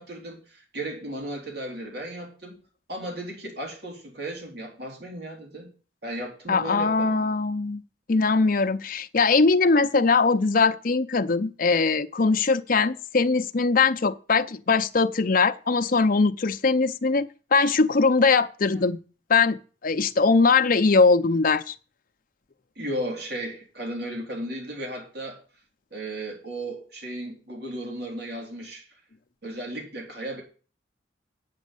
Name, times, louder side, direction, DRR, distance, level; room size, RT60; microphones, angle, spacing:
voice 1, 0.0-2.6 2.9-5.7 6.0-7.4 22.8-25.4 25.9-28.9 29.4-30.4, right 1 dB, 60° right, 3.9 m, -35 dB
voice 2, 6.5-7.8 8.1-19.0 19.3-21.7, left 4 dB, 50° left, 0.7 m, -21 dB
9.1 x 6.3 x 8.4 m
head